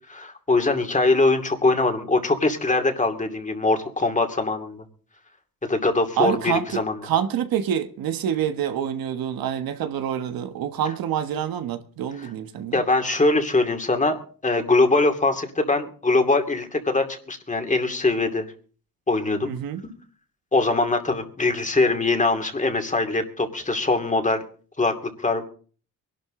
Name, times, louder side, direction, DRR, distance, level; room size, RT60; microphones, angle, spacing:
voice 1, 0.1-4.8 5.6-6.9 12.7-18.5 19.1-19.5 20.5-24.4 24.8-25.4, left 3 dB, 20° left, 2.5 m, -22 dB
voice 2, 6.2-12.8 19.4-19.8, right 9 dB, 90° right, 1.5 m, -27 dB
23.0 x 12.0 x 3.8 m
cardioid pair, 115°, 34 cm